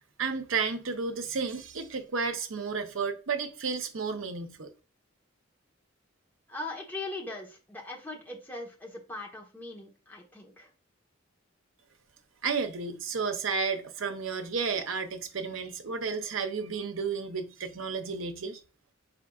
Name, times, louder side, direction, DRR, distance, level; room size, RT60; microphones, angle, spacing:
voice 1, 0.2-4.7 12.4-18.6, right 5 dB, 80° right, 0.7 m, -32 dB
voice 2, 6.5-10.7, left 2 dB, 10° left, 1.0 m, -40 dB
5.0 x 3.7 x 2.3 m
head